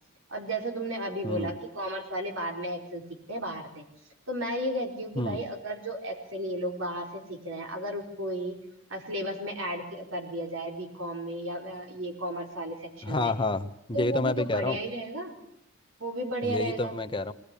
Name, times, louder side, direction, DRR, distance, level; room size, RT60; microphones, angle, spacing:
voice 1, 0.3-3.0 3.3-3.8 4.3-8.6 8.9-13.3 13.9-15.4 16.0-16.9, right 1 dB, 85° right, 3 dB, 4.4 m, -33 dB
voice 2, 13.0-14.8 16.4-17.3, left 2 dB, 25° left, 8 dB, 1.0 m, -29 dB
20.5 x 19.5 x 8.4 m, 0.79 s
head